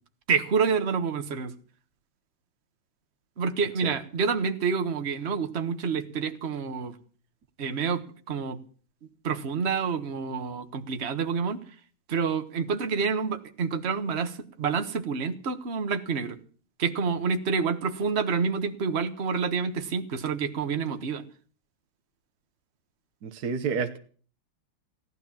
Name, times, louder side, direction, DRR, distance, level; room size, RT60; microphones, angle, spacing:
voice 1, 0.3-1.5 3.4-6.9 7.6-8.6 9.2-11.6 12.1-16.4 16.8-21.2, right 5 dB, 35° right, 8 dB, 1.3 m, -28 dB
voice 2, 23.2-24.0, right 5 dB, 55° right, 6 dB, 1.4 m, -29 dB
17.0 x 12.0 x 7.3 m, 0.44 s
omnidirectional pair, 2.3 m